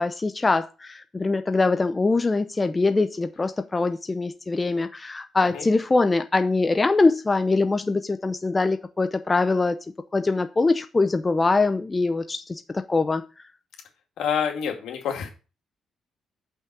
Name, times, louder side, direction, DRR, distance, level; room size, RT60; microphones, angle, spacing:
voice 1, 0.0-9.8 10.1-12.6 12.9-13.2, left 3 dB, 25° left, 0.6 m, -23 dB
voice 2, 14.2-15.3, left 7 dB, 80° left, 2.3 m, -27 dB
5.9 x 5.6 x 6.0 m
cardioid pair, 90°, 0 cm